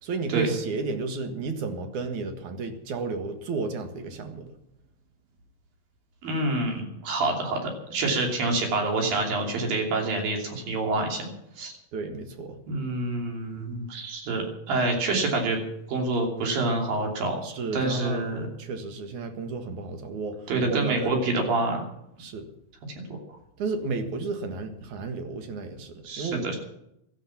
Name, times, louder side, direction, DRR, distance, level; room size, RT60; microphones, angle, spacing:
voice 1, 0.0-4.5 11.9-12.6 17.4-18.3 18.6-21.2 22.2-22.5 23.6-26.6, right 4 dB, 65° right, 6 dB, 2.9 m, -33 dB
voice 2, 6.2-11.3 11.6-11.7 12.7-15.6 15.9-17.4 17.7-18.5 20.5-21.8 23.1-23.2 26.0-26.6, right 2 dB, 85° right, 2 dB, 4.7 m, -27 dB
16.0 x 13.0 x 6.0 m, 0.80 s
omnidirectional pair, 4.0 m